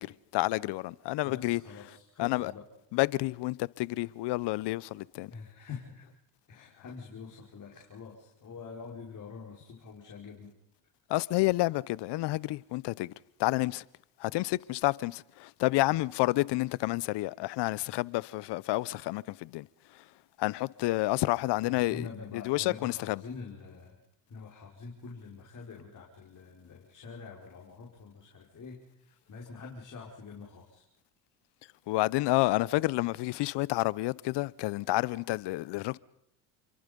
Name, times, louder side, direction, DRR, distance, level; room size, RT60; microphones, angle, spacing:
voice 1, 0.0-1.6 2.2-2.5 2.9-5.3 11.1-13.1 13.4-13.8 14.2-19.7 20.4-22.1 22.5-23.2 31.9-36.0, left 19 dB, 60° left, 0.8 m, -29 dB
voice 2, 1.2-2.7 5.3-6.1 6.5-10.5 21.5-24.0 24.3-30.9, left 5 dB, 40° left, 5.3 m, -46 dB
29.5 x 23.0 x 5.3 m
supercardioid pair, 85°, 45 cm